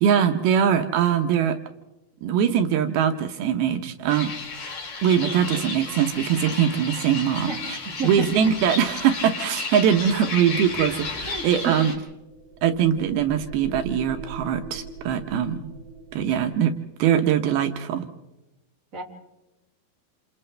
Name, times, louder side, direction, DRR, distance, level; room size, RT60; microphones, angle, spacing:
voice 1, 0.0-1.6 2.2-4.3 5.0-7.8 8.0-11.9 12.6-15.7 16.1-16.7 17.0-18.1, right 8 dB, 80° right, 6 dB, 2.8 m, -22 dB
sound 1, 4.1-11.9, left 4 dB, 55° left, 4.0 m, -33 dB
voice 2, 7.8-8.3 11.3-11.8 18.9-19.0, right 5 dB, 20° right, -3 dB, 3.4 m, -30 dB
sound 2, 11.9-16.6, right 3 dB, 65° right, 8.6 m, -40 dB
29.5 x 28.0 x 3.3 m, 1.0 s
omnidirectional pair, 4.4 m